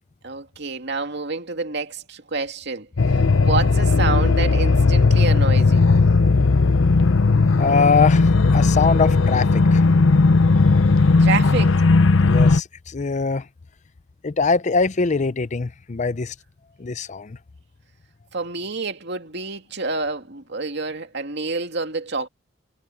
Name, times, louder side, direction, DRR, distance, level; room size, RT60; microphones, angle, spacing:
voice 1, 0.2-5.9 11.2-11.8 18.3-22.3, right 3 dB, 60° right, 2.5 m, -28 dB
sound 1, 3.0-12.6, left 3 dB, 85° left, 0.7 m, -16 dB
voice 2, 7.6-9.8 12.2-13.5 14.2-16.3 16.8-17.4, left 4 dB, 40° left, 0.5 m, -22 dB
head